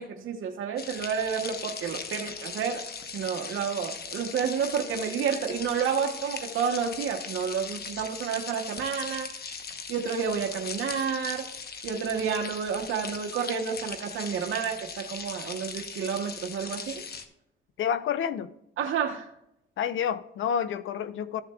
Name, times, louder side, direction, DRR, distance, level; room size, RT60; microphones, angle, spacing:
voice 1, 0.0-2.8 3.1-9.3 9.9-11.4 11.8-17.0 18.8-19.3, right 7 dB, 70° right, 1.0 m, -30 dB
sound 1, 0.8-17.3, left 5 dB, 50° left, 1.1 m, -39 dB
voice 2, 17.8-18.5 19.8-21.4, left 8 dB, 70° left, 0.7 m, -29 dB
14.0 x 7.1 x 2.4 m
cardioid pair, 85°, 21 cm